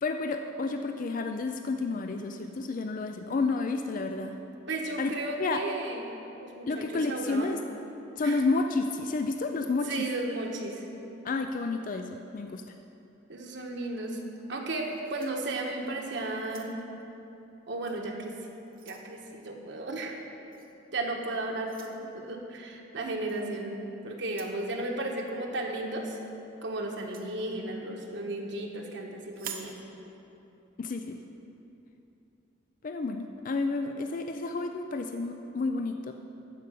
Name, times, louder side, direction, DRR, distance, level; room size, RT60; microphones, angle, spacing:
voice 1, 0.0-4.3 5.0-5.1 5.4-5.6 6.7-7.6 8.2-10.1 11.2-12.1 12.3-12.6 30.8-31.2 32.8-36.1, left 3 dB, 45° left, 6 dB, 0.4 m, -30 dB
voice 2, 4.7-6.1 6.4-7.5 8.2-8.4 9.8-10.9 13.3-14.2 14.5-16.7 17.7-18.4 18.9-20.2 20.9-26.2 26.6-29.7, right 2 dB, 65° right, 1 dB, 1.3 m, -34 dB
sound 1, 14.8-15.9 16.4-17.0 17.8-18.0 18.4-19.1 20.5-20.7 21.6-22.0 23.3-23.5 24.2-24.6 26.9-27.3 29.3-29.8, right 7 dB, 45° right, 0.8 m, -46 dB
12.5 x 5.2 x 7.6 m, 2.9 s
head